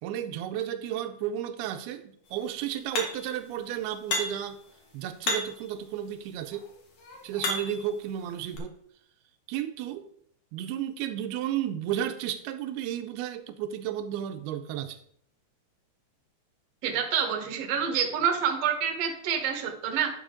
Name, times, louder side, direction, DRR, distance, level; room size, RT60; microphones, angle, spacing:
voice 1, 0.0-4.6 4.9-6.7 7.2-8.8 9.5-10.1 10.5-15.0, right 10 dB, 85° right, 2.5 m, -33 dB
sound 1, 3.0-3.4 4.1-4.5 5.2-5.7 6.5-7.9 8.6-8.7, left 2 dB, 55° left, 2.1 m, -32 dB
voice 2, 16.8-20.1, right 7 dB, 65° right, 1.6 m, -27 dB
10.5 x 6.7 x 3.7 m
omnidirectional pair, 4.8 m